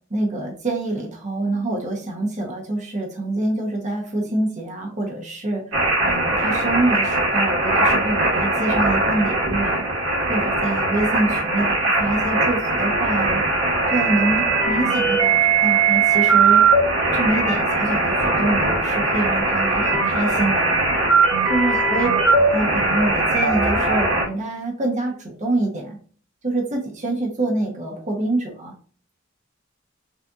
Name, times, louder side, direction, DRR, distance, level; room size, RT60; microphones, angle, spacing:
voice 1, 0.1-5.7 6.0-9.9 10.3-13.4 13.9-16.7 17.1-20.7 21.5-26.0 26.4-28.7, right 2 dB, 35° right, 0 dB, 1.0 m, -25 dB
sound 1, 5.7-24.2, right 3 dB, 70° right, 1.7 m, -20 dB
6.4 x 2.5 x 2.5 m, 0.43 s
head